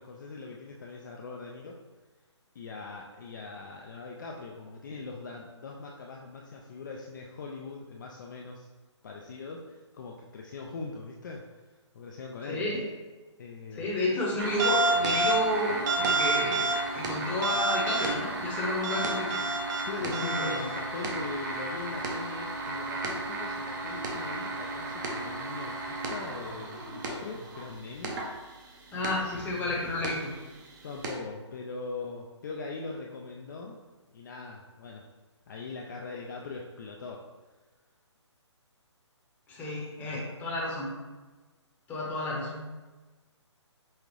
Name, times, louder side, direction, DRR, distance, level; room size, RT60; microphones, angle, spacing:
voice 1, 0.0-1.8 2.5-8.7 9.0-11.4 11.9-12.6 13.4-13.9 19.8-28.2 30.8-33.8 34.1-35.0 35.5-37.2, left 4 dB, 40° left, -1 dB, 0.4 m, -41 dB
voice 2, 12.5-12.8 13.7-16.7 16.9-19.4 20.0-20.5 28.9-30.3 39.5-40.9 41.9-42.6, left 1 dB, 10° left, -5 dB, 0.8 m, -31 dB
sound 1, 14.4-27.6 28.0-28.3 29.0-29.1 30.0-30.1 31.0-31.1, right 2 dB, 40° right, 0.7 m, -31 dB
5.4 x 2.4 x 3.1 m, 1.2 s
hypercardioid pair, 150°, 16 cm